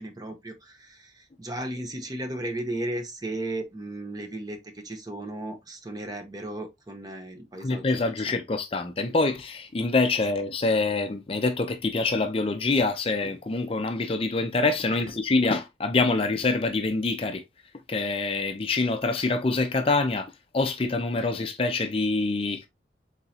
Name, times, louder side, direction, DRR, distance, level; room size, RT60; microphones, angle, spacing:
voice 1, 0.0-8.3 14.9-15.1, right 1 dB, 20° right, 0.7 m, -35 dB
voice 2, 7.6-17.4 17.9-22.7, left 3 dB, 30° left, 0.4 m, -25 dB
4.0 x 3.6 x 2.7 m
head